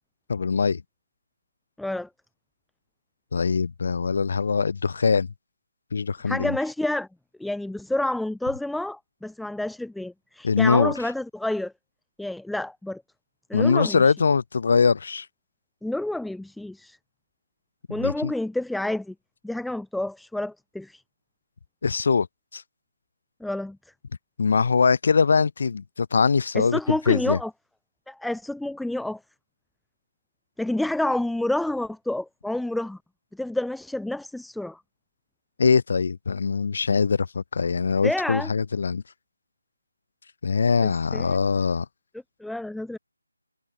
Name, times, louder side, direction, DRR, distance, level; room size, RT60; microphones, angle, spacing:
voice 1, 0.3-0.8 3.3-5.3 5.9-6.6 10.4-10.9 13.5-15.3 17.9-18.3 21.8-22.3 22.5-22.6 24.4-26.8 27.1-27.4 35.6-39.0 40.4-41.9, left 5 dB, 45° left, 6.7 m, -22 dB
voice 2, 1.8-2.1 6.3-7.1 7.4-11.7 12.2-13.0 13.5-14.1 15.8-17.0 17.9-19.1 19.4-21.0 23.4-23.8 26.5-27.5 28.1-29.2 30.6-33.0 33.3-34.8 38.0-38.5 40.8-41.4 42.4-43.0, left 1 dB, ahead, 2.2 m, -29 dB
figure-of-eight pair, 155°, 0 cm